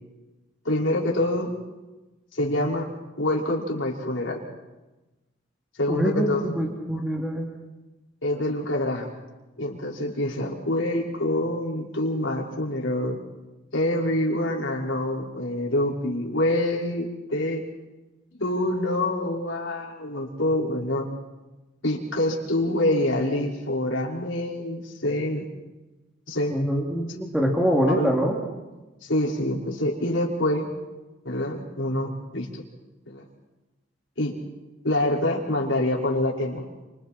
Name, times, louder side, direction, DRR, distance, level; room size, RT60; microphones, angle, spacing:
voice 1, 0.6-1.5 2.3-4.4 5.8-6.5 8.2-9.1 9.6-13.2 13.7-17.6 18.4-21.1 21.8-25.5 26.3-26.6 27.9-28.1 29.0-30.7 31.3-32.6 33.1-33.2 34.2-34.4 34.8-36.7, left 1 dB, 75° left, -2 dB, 5.4 m, -26 dB
voice 2, 5.9-7.5 26.5-28.4, equal, 5° right, -2 dB, 2.9 m, -24 dB
30.0 x 27.0 x 4.5 m, 1.1 s
head